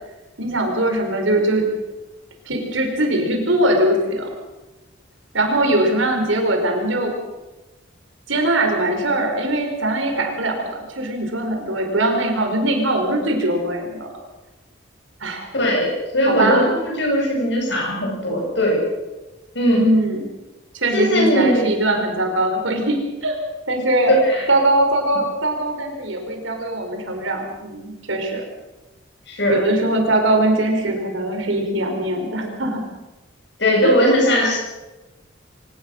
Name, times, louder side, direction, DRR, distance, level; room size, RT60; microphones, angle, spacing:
voice 1, 0.4-1.7 2.4-4.3 5.3-7.1 8.3-14.1 15.2-15.5 16.3-16.7 19.7-20.2 20.7-23.3 23.7-24.1 24.5-28.4 29.5-32.8 33.8-33.9, right 1 dB, 80° right, 3 dB, 5.1 m, -21 dB
voice 2, 15.5-18.8 19.5-19.9 20.9-21.7 24.2-24.5 29.3-29.6 33.6-34.6, equal, 60° left, 0 dB, 8.0 m, -19 dB
24.0 x 18.5 x 6.6 m, 1.1 s
head